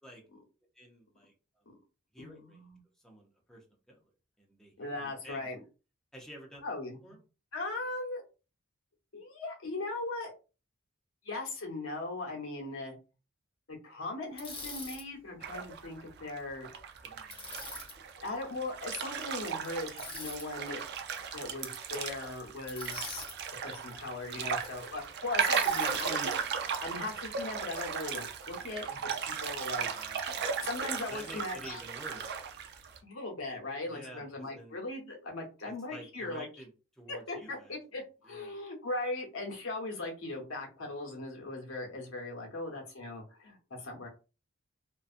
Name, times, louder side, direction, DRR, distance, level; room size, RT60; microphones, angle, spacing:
voice 1, 0.7-1.3 2.1-2.6 3.0-4.1 4.4-5.5 6.1-6.7 7.0-7.2 17.0-17.6 24.3-24.5 28.4-30.5 31.1-32.4 33.8-34.7 35.6-38.6, equal, ahead, -1 dB, 0.5 m, -51 dB
voice 2, 2.2-2.8 4.8-5.6 6.6-7.1 7.5-8.2 9.1-10.3 11.2-12.9 13.7-16.7 18.2-20.8 21.3-23.2 23.6-31.8 33.0-36.5 37.1-44.1, left 2 dB, 80° left, 0 dB, 0.9 m, -39 dB
Bicycle, 14.4-15.0 17.3-17.9 20.0-20.5 22.7-23.4 25.5-26.1, left 3 dB, 25° left, 0.8 m, -43 dB
sound 1, 15.4-16.4 16.6-33.0, right 7 dB, 55° right, 0.4 m, -36 dB
2.6 x 2.3 x 2.4 m, 0.32 s
head